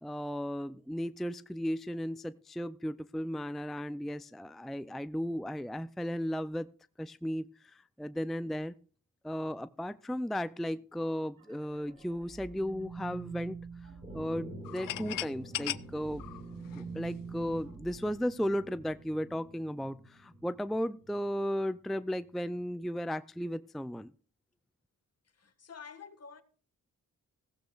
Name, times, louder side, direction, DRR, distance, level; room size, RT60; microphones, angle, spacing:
voice 1, 0.0-6.7 7.0-8.7 9.2-13.9 14.1-16.2 16.8-24.1, equal, ahead, 0.4 m, -35 dB
sound 1, 11.4-15.3 15.6-19.0, right 5 dB, 90° right, 1.8 m, -46 dB
sound 2, 14.0-21.8, right 1 dB, 20° right, 6.5 m, -49 dB
sound 3, 14.6-17.4, left 14 dB, 85° left, 0.5 m, -38 dB
voice 2, 25.2-26.4, left 6 dB, 50° left, 1.7 m, -49 dB
15.5 x 15.5 x 2.4 m
cardioid pair, 70°, 33 cm